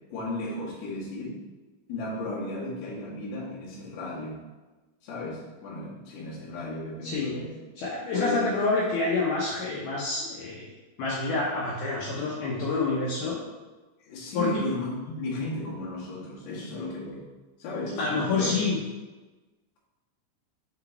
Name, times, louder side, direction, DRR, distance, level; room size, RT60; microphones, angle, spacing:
voice 1, 0.1-1.4 1.9-4.4 5.0-7.5 8.1-8.4 14.0-17.2 17.6-18.6, left 2 dB, 60° left, -6 dB, 1.9 m, -34 dB
voice 2, 7.0-7.3 7.8-10.7 11.0-13.4 14.3-14.5 18.0-18.8, left 3 dB, 85° left, -5 dB, 2.1 m, -27 dB
6.5 x 4.0 x 4.4 m, 1.2 s
omnidirectional pair, 5.5 m